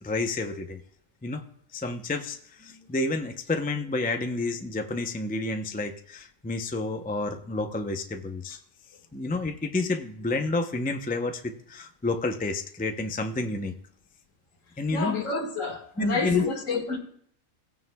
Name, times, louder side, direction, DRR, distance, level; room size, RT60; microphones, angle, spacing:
voice 1, 0.0-0.8 1.2-1.4 1.7-8.6 9.1-13.7 14.8-15.1 16.0-16.5, left 2 dB, 10° left, 0.4 m, -30 dB
voice 2, 14.9-17.0, left 4 dB, 70° left, 2.0 m, -29 dB
17.0 x 9.3 x 2.3 m
omnidirectional pair, 1.4 m